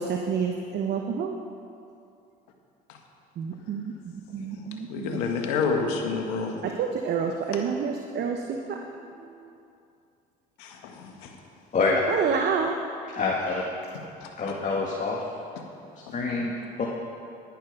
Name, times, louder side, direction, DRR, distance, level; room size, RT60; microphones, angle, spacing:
voice 1, 0.0-1.3 3.4-5.2 6.6-8.8 9.2-9.3 12.1-12.8, right 6 dB, 55° right, 3 dB, 0.9 m, -29 dB
voice 2, 4.9-6.8 10.6-11.3 14.2-14.5 16.1-16.2, left 4 dB, 85° left, 3 dB, 1.4 m, -30 dB
voice 3, 11.7-12.0 13.1-13.6 14.4-15.2 16.1-16.9, left 3 dB, 40° left, -2 dB, 1.6 m, -26 dB
10.5 x 10.0 x 5.2 m, 2.5 s
supercardioid pair, 75°, 20 cm